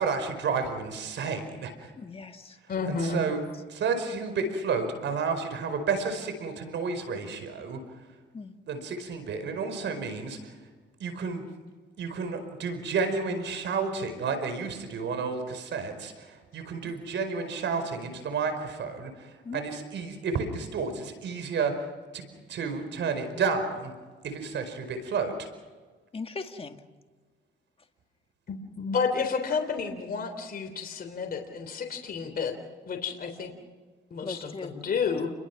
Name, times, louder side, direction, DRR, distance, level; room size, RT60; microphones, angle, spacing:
voice 1, 0.0-1.7 2.9-3.4 3.7-7.8 8.7-10.5 11.0-11.4 12.0-19.1 19.5-21.7 22.1-22.2 22.5-23.9 24.2-25.5, right 5 dB, 70° right, 8 dB, 5.0 m, -31 dB
voice 2, 2.0-2.6 8.3-8.5 16.8-16.9 19.4-19.6 26.1-26.8 34.2-34.8, left 4 dB, 30° left, 5 dB, 2.0 m, -39 dB
voice 3, 2.7-3.2 28.5-32.6 32.9-33.5 34.1-35.3, left 5 dB, 50° left, 4 dB, 3.6 m, -31 dB
30.0 x 22.0 x 6.0 m, 1.4 s
cardioid pair, 90°, 20 cm